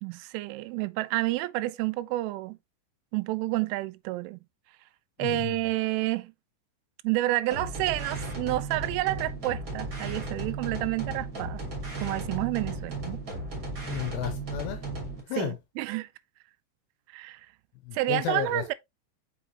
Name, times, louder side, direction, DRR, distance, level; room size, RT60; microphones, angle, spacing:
voice 1, 0.0-2.6 3.1-4.4 5.2-6.3 7.0-11.6 12.0-13.2 15.4-16.1 17.1-17.4 17.9-18.7, right 18 dB, 85° right, 3.0 m, -29 dB
voice 2, 5.2-5.6 13.8-14.8 15.3-15.6 17.9-18.6, left 13 dB, 80° left, 2.5 m, -33 dB
sound 1, 7.5-15.2, right 2 dB, 25° right, 1.9 m, -35 dB
6.0 x 6.0 x 2.8 m
omnidirectional pair, 5.5 m